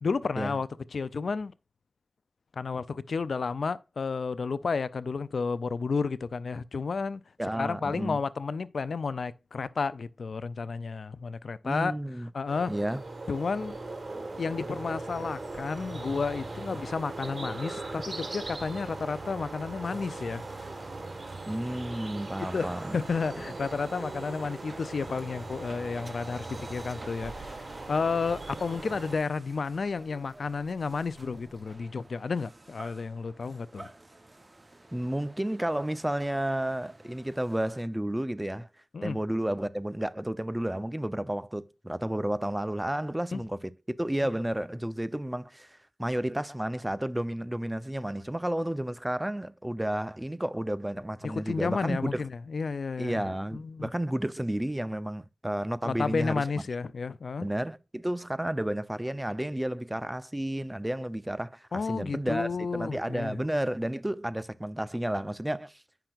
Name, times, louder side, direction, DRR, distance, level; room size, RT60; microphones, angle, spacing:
voice 1, 0.0-1.5 2.6-7.2 7.5-11.9 12.3-12.7 13.3-13.8 14.4-20.4 22.5-33.9 38.9-39.2 43.3-43.4 51.2-53.3 53.5-53.9 55.8-57.5 61.7-63.4, left 4 dB, 90° left, 0.3 m, -32 dB
voice 2, 7.4-8.2 11.6-12.3 12.7-13.0 21.5-22.9 34.9-38.7 39.0-43.7 44.0-52.2 53.0-56.4 57.4-65.8, right 1 dB, 15° right, 0.5 m, -31 dB
sound 1, 12.5-29.2, right 2 dB, 55° right, 1.4 m, -39 dB
sound 2, 19.8-37.8, right 2 dB, 40° right, 0.8 m, -52 dB
8.8 x 5.8 x 2.4 m
cardioid pair, 45°, 0 cm